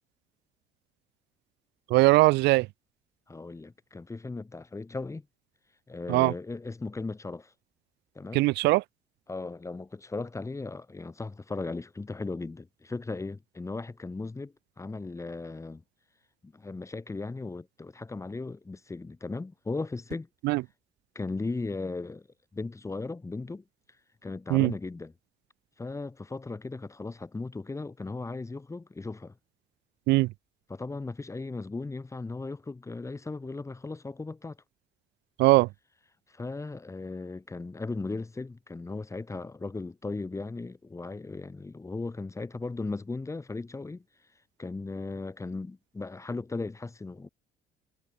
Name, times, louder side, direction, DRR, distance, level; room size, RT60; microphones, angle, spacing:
voice 1, 1.9-2.7 6.1-6.3 8.3-8.8 20.4-20.6 24.5-24.7 30.1-30.3 35.4-35.7, right 21 dB, 85° right, 0.7 m, -20 dB
voice 2, 3.3-5.2 5.9-7.5 8.1-8.4 9.3-15.8 16.4-20.3 21.1-22.3 22.5-23.6 24.2-25.1 25.8-29.3 30.7-34.6 36.3-44.0 44.6-47.3, left 3 dB, 15° left, 3.1 m, -37 dB
cardioid pair, 110°, 17 cm